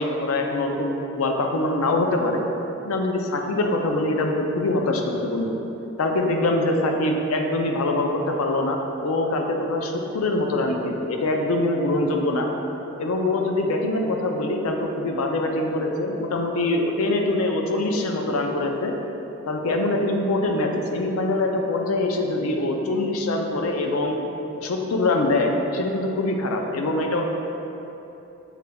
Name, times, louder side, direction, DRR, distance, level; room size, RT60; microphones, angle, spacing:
voice 1, 0.0-2.4 2.8-5.6 6.0-12.5 13.0-18.9 19.5-24.2 24.6-27.2, left 2 dB, 90° left, 2 dB, 0.5 m, -24 dB
6.4 x 3.4 x 2.2 m, 3.0 s
head